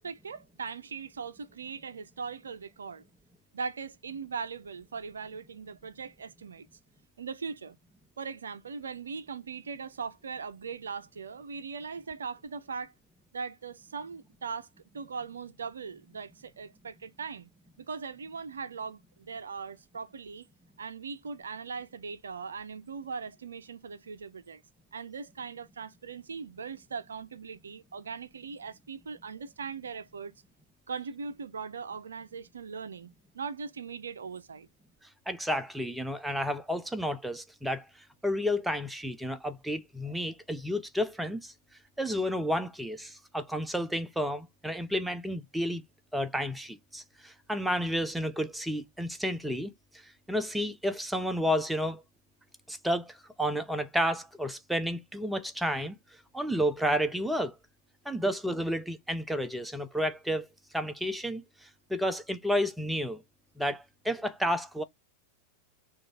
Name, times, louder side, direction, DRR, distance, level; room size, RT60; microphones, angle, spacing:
voice 1, 0.0-3.0 3.5-6.7 7.2-7.8 8.2-12.9 13.3-14.7 14.9-17.5 17.8-20.5 20.8-24.6 24.9-30.3 30.9-34.7, right 5 dB, 70° right, 0.4 m, -40 dB
voice 2, 35.3-37.9 38.2-41.5 42.0-45.8 46.1-49.7 50.0-52.0 52.7-56.0 56.3-57.6 58.1-60.5 60.7-63.2 63.6-64.8, equal, 5° right, 0.5 m, -31 dB
3.8 x 2.3 x 3.6 m
figure-of-eight pair, 90°, 0 cm